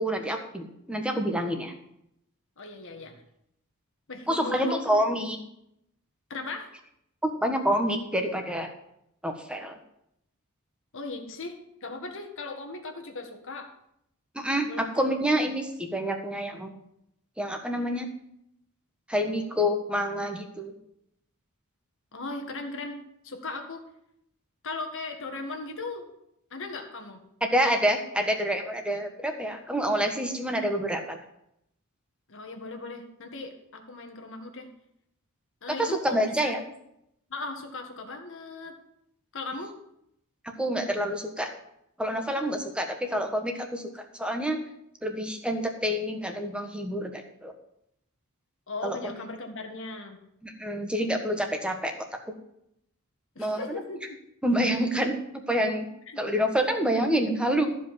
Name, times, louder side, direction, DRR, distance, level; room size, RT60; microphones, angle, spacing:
voice 1, 0.0-1.7 4.3-5.4 7.2-8.7 9.2-9.8 14.3-16.7 17.4-18.1 19.1-20.7 27.5-31.2 35.8-36.6 40.6-41.5 42.0-44.6 45.0-47.5 48.8-49.0 50.4-51.9 53.4-53.8 54.4-55.9 56.2-57.7, equal, 5° right, 4 dB, 1.4 m, -27 dB
voice 2, 2.6-3.1 4.1-4.9 6.3-6.7 10.9-13.7 14.7-15.5 22.1-23.8 24.6-26.1 26.5-27.2 32.3-34.7 35.6-36.6 37.3-38.8 39.3-39.7 48.7-50.2 53.4-54.0 56.1-56.2, left 3 dB, 60° left, 4 dB, 1.8 m, -37 dB
14.0 x 5.2 x 7.5 m, 0.77 s
head